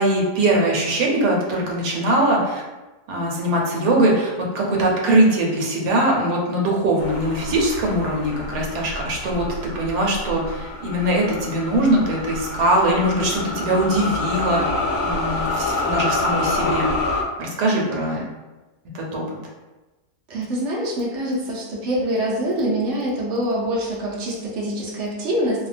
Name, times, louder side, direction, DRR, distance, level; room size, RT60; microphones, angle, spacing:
voice 1, 0.0-2.6 3.1-14.7 15.0-16.9 17.4-18.2 18.9-19.2, right 1 dB, 85° right, -2 dB, 1.2 m, -21 dB
sound 1, 7.0-17.2, left 2 dB, 75° left, 1.1 m, -27 dB
voice 2, 20.3-25.7, equal, 60° right, -3 dB, 0.8 m, -25 dB
2.7 x 2.2 x 2.4 m, 1.1 s
omnidirectional pair, 1.7 m